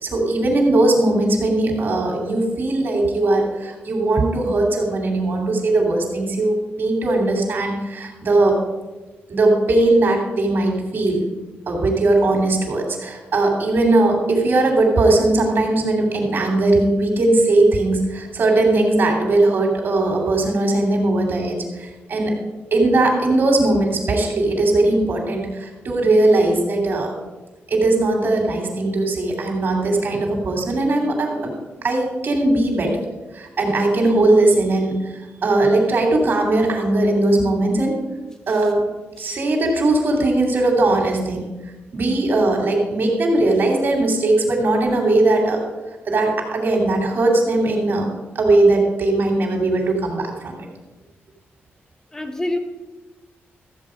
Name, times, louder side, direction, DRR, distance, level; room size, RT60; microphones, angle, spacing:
voice 1, 0.0-8.6 9.3-11.2 11.7-22.3 22.7-27.1 27.7-31.5 31.8-33.0 33.3-35.1 35.4-38.0 38.5-38.8 39.2-41.5 41.9-45.6 46.1-48.1 48.3-50.5, right 2 dB, 55° right, 1 dB, 2.9 m, -19 dB
voice 2, 52.1-52.6, left 1 dB, 15° left, 4 dB, 1.3 m, -27 dB
13.5 x 7.8 x 5.1 m, 1.2 s
wide cardioid pair, 140°, 4 cm